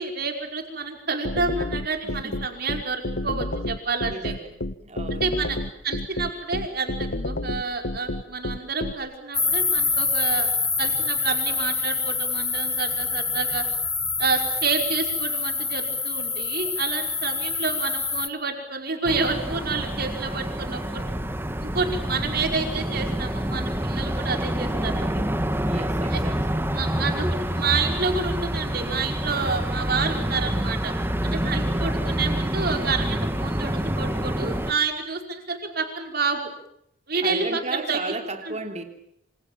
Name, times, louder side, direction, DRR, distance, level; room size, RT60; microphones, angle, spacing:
voice 1, 0.0-4.3 5.1-5.6 5.8-10.5 10.8-13.7 14.2-21.1 21.6-25.2 26.1-26.2 26.8-30.9 31.2-36.5 37.1-38.0 38.4-38.6, right 4 dB, 55° right, 4 dB, 5.2 m, -29 dB
sound 1, 1.2-8.9, left 1 dB, 65° left, 1.3 m, -29 dB
voice 2, 2.0-2.4 4.0-4.6 4.8-5.6 25.6-26.6 31.4-31.9 37.2-38.8, right 2 dB, 35° right, 5 dB, 3.1 m, -35 dB
sound 2, 9.3-18.3, left 4 dB, 10° left, 1.2 m, -26 dB
sound 3, 19.0-34.7, equal, 10° right, 1.8 m, -27 dB
27.5 x 26.5 x 7.4 m, 0.73 s
head